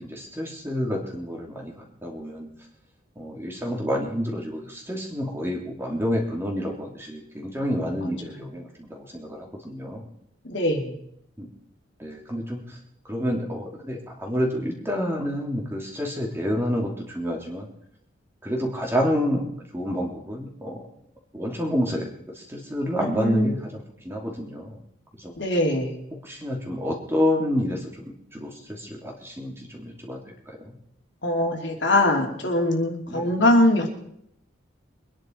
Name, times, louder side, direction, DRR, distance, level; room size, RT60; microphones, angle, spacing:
voice 1, 0.0-1.7 2.0-2.5 3.2-10.1 11.4-11.5 12.0-12.6 13.1-17.7 18.4-19.4 19.7-20.8 21.3-22.1 22.4-24.8 25.2-25.3 26.2-27.9 28.3-30.2 30.6-30.7 33.1-33.3, equal, 10° right, -1 dB, 2.6 m, -28 dB
voice 2, 8.0-8.5 10.4-10.9 23.0-23.6 25.4-26.0 31.2-33.9, left 1 dB, 65° left, 1 dB, 2.9 m, -22 dB
23.5 x 10.5 x 4.5 m, 0.73 s
head